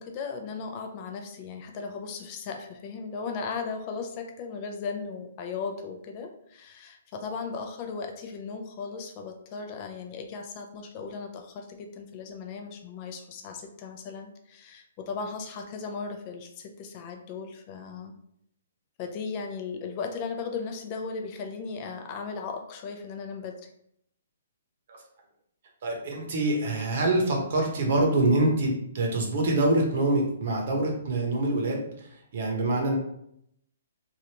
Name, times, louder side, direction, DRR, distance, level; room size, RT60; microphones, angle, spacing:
voice 1, 0.0-18.1 19.0-23.7, left 5 dB, 30° left, 4 dB, 0.4 m, -37 dB
voice 2, 25.8-33.0, right 2 dB, 50° right, 0 dB, 0.9 m, -25 dB
3.2 x 2.5 x 2.8 m, 0.72 s
hypercardioid pair, 160°, 0 cm